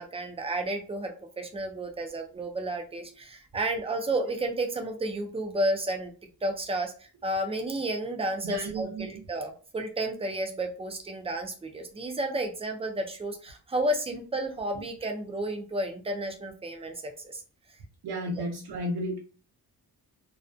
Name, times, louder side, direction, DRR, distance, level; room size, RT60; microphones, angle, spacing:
voice 1, 0.0-6.1 6.4-17.4, right 1 dB, 15° right, 4 dB, 0.3 m, -32 dB
voice 2, 8.4-9.2 18.0-19.2, right 1 dB, 85° right, 1 dB, 0.6 m, -33 dB
2.4 x 2.1 x 2.5 m, 0.37 s
wide cardioid pair, 165°, 38 cm